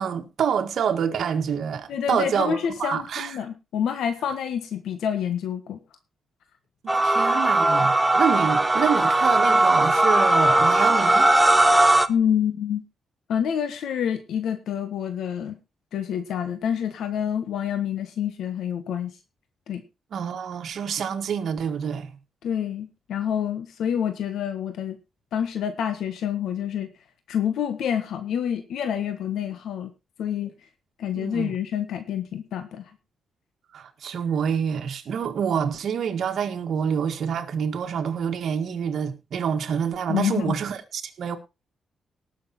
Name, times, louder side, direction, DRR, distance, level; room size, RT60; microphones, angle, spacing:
voice 1, 0.0-3.3 6.8-11.3 20.1-22.1 31.2-31.5 33.7-41.4, right 7 dB, 65° right, 1.9 m, -27 dB
voice 2, 1.9-5.8 12.1-12.8 13.3-15.6 15.9-19.1 19.7-19.8 22.4-25.0 25.3-26.9 27.3-29.9 30.2-30.5 31.0-32.8 40.1-40.6, left 9 dB, 85° left, 1.5 m, -27 dB
sound 1, 6.9-12.1, right 1 dB, 10° right, 0.9 m, -19 dB
19.0 x 6.7 x 4.3 m
cardioid pair, 115°, 0 cm